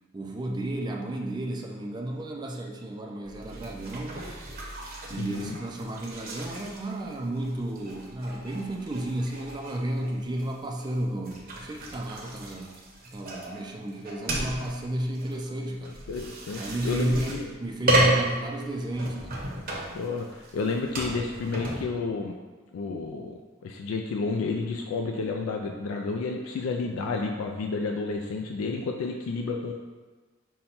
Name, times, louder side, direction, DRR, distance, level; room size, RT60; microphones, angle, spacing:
voice 1, 0.1-4.2 5.1-12.8 13.1-15.9 16.6-19.3, right 1 dB, 20° right, 0 dB, 0.4 m, -32 dB
sound 1, 3.3-21.8, right 1 dB, 45° right, 0.8 m, -33 dB
voice 2, 5.2-5.5 15.5-15.6 15.8-17.5 19.9-22.4 22.7-29.7, left 4 dB, 90° left, 3 dB, 0.3 m, -31 dB
5.4 x 2.2 x 4.2 m, 1.3 s
head